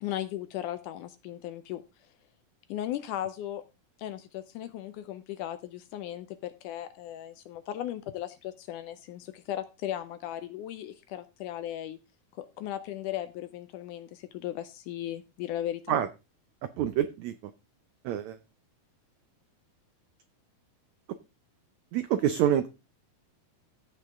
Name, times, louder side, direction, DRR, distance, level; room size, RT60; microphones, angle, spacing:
voice 1, 0.0-1.8 2.7-3.6 4.0-12.0 12.4-16.0, left 12 dB, 75° left, 12 dB, 2.0 m, -37 dB
voice 2, 16.8-17.3 18.0-18.4 21.9-22.7, right 10 dB, 85° right, 11 dB, 1.6 m, -26 dB
15.5 x 5.6 x 3.5 m, 0.27 s
omnidirectional pair, 4.1 m